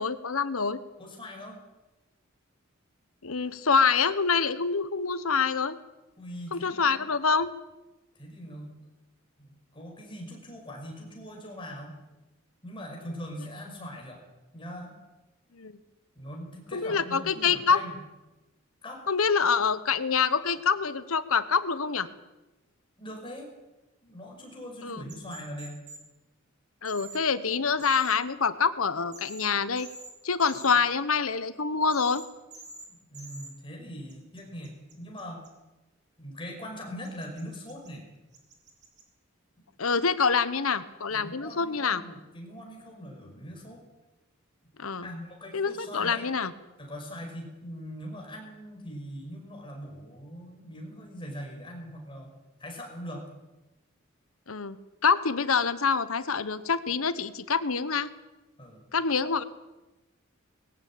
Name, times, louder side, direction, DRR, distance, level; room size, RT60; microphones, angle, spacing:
voice 1, 0.0-0.8 3.2-5.8 6.5-7.5 15.5-15.8 16.7-17.8 19.1-22.1 24.8-25.0 26.8-29.9 30.2-32.2 39.8-42.0 44.8-45.1 45.5-46.5 54.5-54.8 55.0-58.1 58.9-59.4, left 5 dB, 90° left, 14 dB, 1.2 m, -26 dB
voice 2, 1.0-1.6 6.2-7.0 8.2-8.8 9.4-12.0 12.6-14.2 14.5-14.9 16.2-18.0 18.8-19.0 23.0-23.5 24.0-25.9 32.9-35.5 36.2-38.1 41.1-43.8 45.0-46.3 46.8-52.3 52.6-53.3 58.6-58.8, equal, 25° left, 1 dB, 5.4 m, -41 dB
sound 1, 25.1-26.0 26.8-27.2 27.8-28.1 29.1-29.5 29.8-30.1 30.4-30.7 31.9-32.3 32.5-32.9 33.1-33.5 34.1-35.5 37.0-37.9 38.3-39.0, right 2 dB, 35° right, 4.2 m, -46 dB
20.5 x 15.5 x 8.8 m, 1.1 s
head